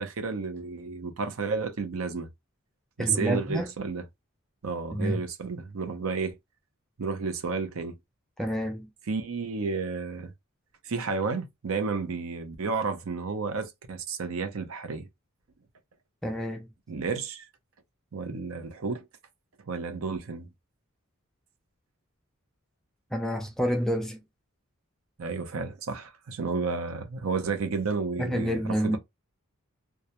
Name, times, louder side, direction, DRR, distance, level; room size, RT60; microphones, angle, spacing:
voice 1, 0.0-2.3 3.0-4.0 4.6-6.4 7.0-8.0 9.1-10.3 10.8-15.1 16.9-17.4 18.1-19.0 19.7-20.5 25.2-29.0, right 4 dB, 75° right, 0.6 m, -31 dB
voice 2, 3.0-3.7 4.9-5.2 8.4-8.9 16.2-16.7 23.1-24.2 28.2-29.0, equal, ahead, 0.4 m, -28 dB
2.3 x 2.0 x 2.8 m
head